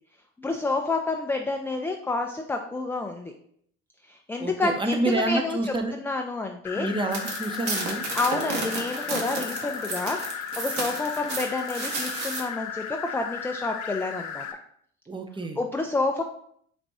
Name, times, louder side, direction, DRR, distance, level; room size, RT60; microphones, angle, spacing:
voice 1, 0.4-3.3 4.1-5.6 6.0-6.9 8.1-14.5 15.6-16.2, left 3 dB, 5° left, 3 dB, 0.3 m, -29 dB
voice 2, 4.4-6.0 6.7-8.0 15.1-15.6, right 2 dB, 15° right, 5 dB, 0.7 m, -28 dB
sound 1, 6.6-14.5, left 8 dB, 60° left, 0.7 m, -35 dB
sound 2, 7.1-12.4, right 3 dB, 60° right, 1.4 m, -32 dB
4.2 x 2.5 x 4.6 m, 0.65 s
supercardioid pair, 75°, 32 cm